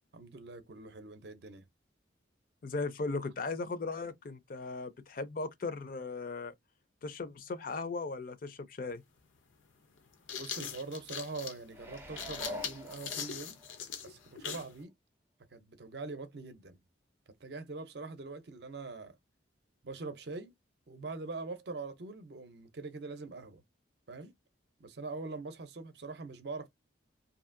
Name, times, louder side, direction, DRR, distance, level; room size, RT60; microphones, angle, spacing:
voice 1, 0.1-1.7 10.4-13.6 14.0-14.9 15.5-16.8 17.4-19.2 19.8-20.5 20.9-23.6 24.1-24.3 24.8-26.7, right 3 dB, 55° right, 0.6 m, -43 dB
voice 2, 2.6-6.5 7.0-9.0, left 3 dB, 45° left, 0.4 m, -37 dB
sound 1, 8.9-9.0 10.0-14.7, left 7 dB, 90° left, 0.6 m, -41 dB
sound 2, 11.7-13.8 14.3-14.4, left 2 dB, 10° right, 0.4 m, -46 dB
2.7 x 2.5 x 2.5 m
head